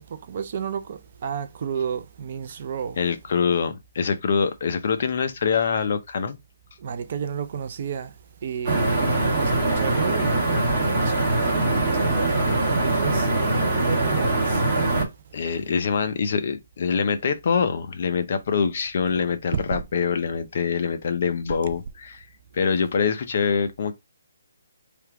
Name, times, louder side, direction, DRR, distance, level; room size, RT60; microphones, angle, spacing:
voice 1, 0.0-3.0 6.8-8.1 8.4-10.4 11.0-11.6 11.9-13.3 13.8-14.6 19.2-19.3 19.7-19.8, right 7 dB, 35° right, 0.4 m, -32 dB
voice 2, 3.0-6.4 15.3-22.3 22.5-23.9, left 6 dB, 40° left, 0.6 m, -24 dB
sound 1, 8.6-15.0, right 2 dB, 15° right, 1.5 m, -22 dB
3.4 x 2.9 x 4.7 m
hypercardioid pair, 175°, 0 cm